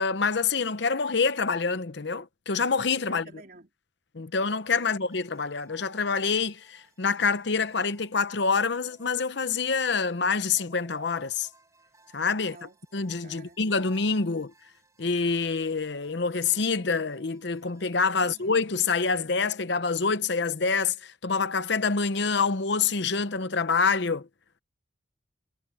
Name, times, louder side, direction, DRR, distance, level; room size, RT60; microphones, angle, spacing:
voice 1, 0.0-3.2 4.1-11.5 12.1-12.6 12.9-14.5 15.0-24.3, left 5 dB, 60° left, 0.8 m, -26 dB
voice 2, 3.0-3.7 12.4-13.6 18.1-18.5, right 2 dB, 45° right, 4.0 m, -51 dB
sound 1, 5.1-18.8, right 2 dB, 15° right, 7.5 m, -59 dB
head